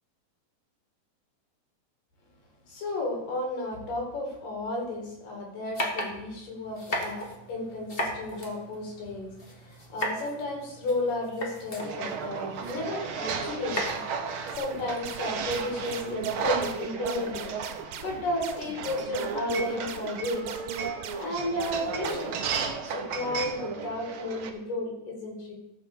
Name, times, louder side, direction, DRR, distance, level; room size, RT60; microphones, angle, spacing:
voice 1, 2.7-7.2 7.5-14.0 14.6-17.5 18.0-20.5 21.1-22.3 22.5-25.5, left 1 dB, 90° left, 0 dB, 4.1 m, -33 dB
sound 1, 5.7-16.7, equal, 25° left, 1.2 m, -38 dB
sound 2, 11.8-24.5, right 5 dB, 60° right, 1.4 m, -34 dB
sound 3, 14.5-22.4, right 10 dB, 90° right, 2.3 m, -42 dB
14.0 x 5.5 x 6.8 m, 0.90 s
omnidirectional pair, 3.7 m